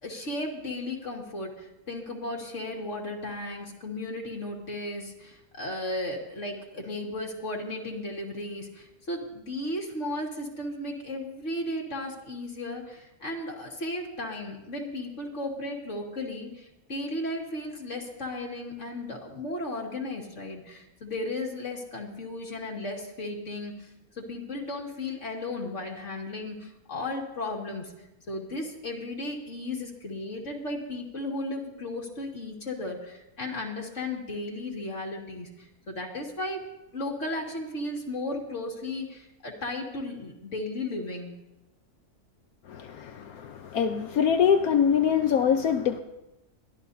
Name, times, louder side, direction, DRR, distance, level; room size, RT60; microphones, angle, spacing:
voice 1, 0.0-23.9 24.2-36.6 36.9-41.3, left 2 dB, 50° left, -1 dB, 2.5 m, -35 dB
voice 2, 42.7-46.0, left 7 dB, 70° left, 6 dB, 1.2 m, -24 dB
22.0 x 14.5 x 2.7 m, 0.93 s
omnidirectional pair, 1.6 m